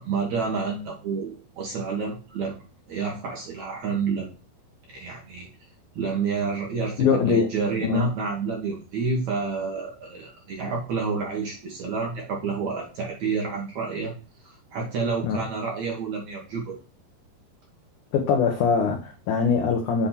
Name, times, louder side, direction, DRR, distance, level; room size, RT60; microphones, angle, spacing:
voice 1, 0.0-2.6 2.9-4.3 4.9-5.5 5.9-14.1 14.4-16.8, right 5 dB, 60° right, -1 dB, 2.0 m, -29 dB
voice 2, 7.0-7.5 7.8-8.1 15.2-15.4 18.1-20.1, left 6 dB, 90° left, 3 dB, 1.7 m, -22 dB
7.8 x 3.7 x 4.2 m, 0.34 s
omnidirectional pair, 4.9 m